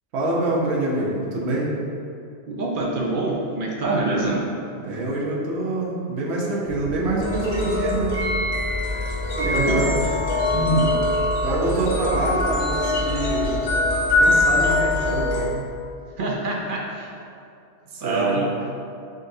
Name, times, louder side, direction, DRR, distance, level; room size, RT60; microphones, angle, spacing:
voice 1, 0.1-1.7 4.8-8.2 9.4-10.0 10.5-11.0 11.4-13.6 14.2-15.6 17.9-18.4, right 2 dB, 75° right, -3 dB, 0.9 m, -25 dB
voice 2, 2.5-4.5 9.4-9.8 16.2-17.1 18.0-18.5, right 2 dB, 60° right, -2 dB, 0.6 m, -25 dB
sound 1, 6.6-15.5, equal, 40° left, 0.5 m, -36 dB
sound 2, 7.2-15.4, left 2 dB, 75° left, 1.2 m, -23 dB
3.9 x 3.8 x 2.6 m, 2.5 s
omnidirectional pair, 1.1 m